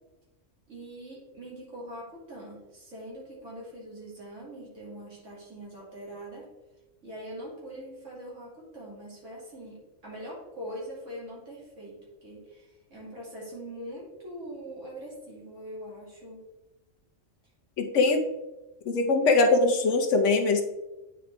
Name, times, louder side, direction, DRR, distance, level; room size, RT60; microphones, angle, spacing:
voice 1, 0.7-6.5 7.0-16.4, right 1 dB, 75° right, -5 dB, 2.9 m, -42 dB
voice 2, 17.8-18.2 18.9-20.6, left 3 dB, 70° left, 4 dB, 1.1 m, -22 dB
9.1 x 5.0 x 3.4 m, 1.0 s
omnidirectional pair, 1.3 m